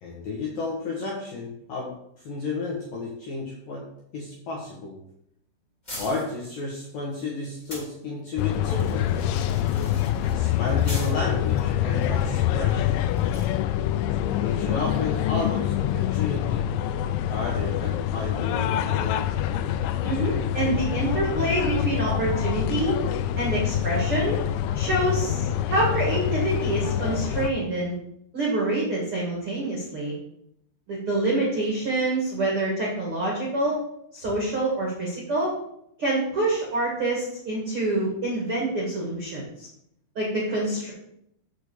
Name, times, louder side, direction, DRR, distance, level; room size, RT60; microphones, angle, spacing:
voice 1, 0.0-3.8 4.1-5.0 5.9-9.1 10.2-13.0 14.1-16.7 17.3-19.3, left 3 dB, 65° left, -3 dB, 2.2 m, -32 dB
sound 1, 5.8-7.9 8.4-13.5, left 1 dB, 20° left, 1.2 m, -43 dB
sound 2, 8.4-27.5, left 11 dB, 90° left, 2.6 m, -25 dB
voice 2, 20.0-23.0 23.3-24.4 24.7-27.9 28.3-30.1 30.9-33.8 34.1-35.5 36.0-39.7 40.1-40.9, right 2 dB, 55° right, -4 dB, 1.5 m, -26 dB
6.5 x 6.0 x 7.0 m, 0.75 s
omnidirectional pair, 5.9 m